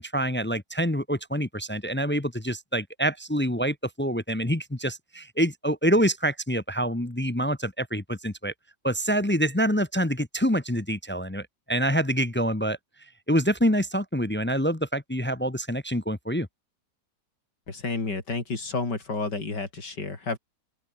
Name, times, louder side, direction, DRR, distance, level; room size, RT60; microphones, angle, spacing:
voice 1, 0.0-8.5 8.8-12.8 13.3-16.5, equal, 10° left, 0.6 m, -26 dB
voice 2, 17.7-20.4, left 3 dB, 90° left, 4.7 m, -30 dB
open air
omnidirectional pair, 1.8 m